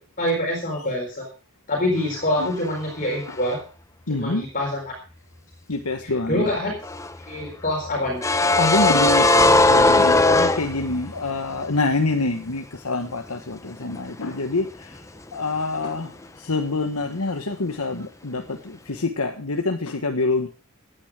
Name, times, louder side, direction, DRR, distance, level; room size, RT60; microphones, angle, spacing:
voice 1, 0.2-1.3 1.7-3.6 4.1-4.9 6.3-6.8 7.3-8.2, left 1 dB, 35° left, 4.2 m, -25 dB
voice 2, 4.1-4.4 5.7-6.5 8.6-15.0 15.3-16.1 16.4-20.5, left 3 dB, 80° left, 1.3 m, -26 dB
sound 1, 6.8-11.3 11.5-11.7 13.8-14.2 14.5-14.7, left 2 dB, 15° left, 0.7 m, -18 dB
15.0 x 9.6 x 4.9 m
head